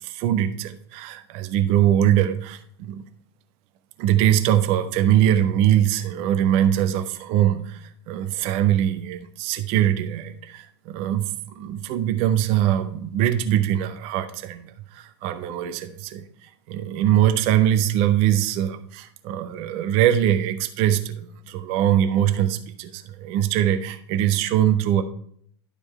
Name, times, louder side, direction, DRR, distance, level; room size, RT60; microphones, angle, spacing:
voice 1, 0.0-3.0 4.0-11.3 11.6-25.0, right 11 dB, 45° right, 8 dB, 1.0 m, -22 dB
11.5 x 5.1 x 4.2 m, 0.63 s
figure-of-eight pair, 90°, 14 cm